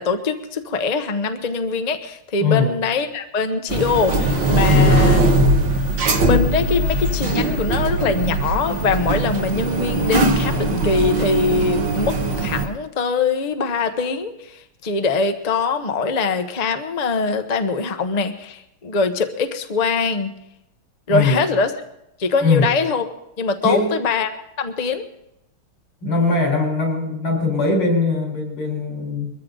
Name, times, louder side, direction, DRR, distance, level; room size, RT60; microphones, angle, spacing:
voice 1, 0.0-5.2 6.2-20.3 21.1-21.7 22.2-23.1 23.4-24.3 24.6-25.0, left 4 dB, 30° left, 7 dB, 0.7 m, -22 dB
voice 2, 2.4-2.7 4.7-5.1 21.1-21.5 22.4-22.7 23.6-24.0 26.0-29.3, left 3 dB, 90° left, 2 dB, 5.1 m, -20 dB
sound 1, 3.7-12.6, right 2 dB, 60° right, 2.2 m, -20 dB
22.0 x 14.5 x 3.9 m, 0.85 s
omnidirectional pair, 2.3 m